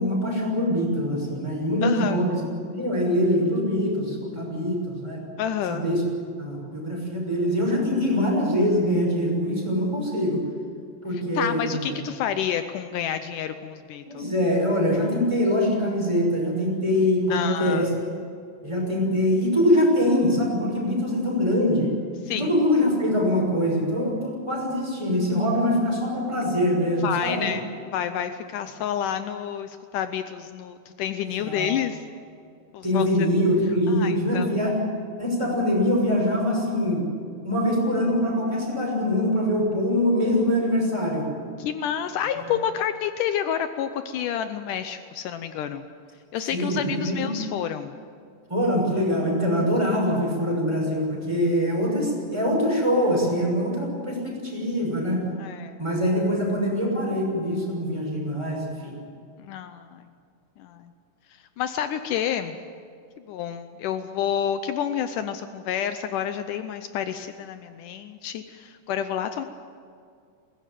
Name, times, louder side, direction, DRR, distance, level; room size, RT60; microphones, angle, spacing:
voice 1, 0.0-2.4 2.7-5.2 5.7-6.0 6.4-10.4 11.0-12.0 14.1-17.9 18.6-21.9 22.4-27.5 31.4-31.7 32.8-34.8 35.2-37.1 37.4-41.3 42.4-42.5 46.5-47.3 48.5-55.2 55.8-59.0, left 1 dB, 10° right, -2 dB, 6.0 m, -23 dB
voice 2, 1.8-2.2 5.4-5.9 11.1-14.3 17.3-17.9 22.2-22.5 27.0-27.6 27.9-32.0 32.7-33.1 33.9-34.5 41.6-45.8 46.3-47.9 55.4-55.8 59.4-60.0 60.6-60.9 61.6-62.6 63.3-69.4, left 9 dB, 80° left, 9 dB, 2.3 m, -29 dB
22.0 x 18.0 x 9.2 m, 2.3 s
omnidirectional pair, 3.8 m